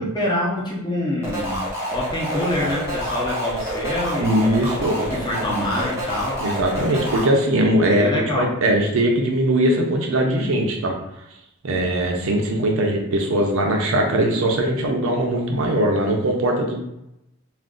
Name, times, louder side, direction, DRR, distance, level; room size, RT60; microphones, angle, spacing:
voice 1, 0.0-1.6 1.9-4.6 4.9-6.4 7.9-8.5, left 1 dB, 20° left, -4 dB, 0.8 m, -26 dB
sound 1, 1.2-7.2, equal, 15° right, 0.9 m, -28 dB
voice 2, 4.2-5.0 6.4-11.0 11.6-16.8, right 1 dB, 70° right, 2 dB, 0.6 m, -20 dB
2.5 x 2.5 x 3.6 m, 0.86 s
head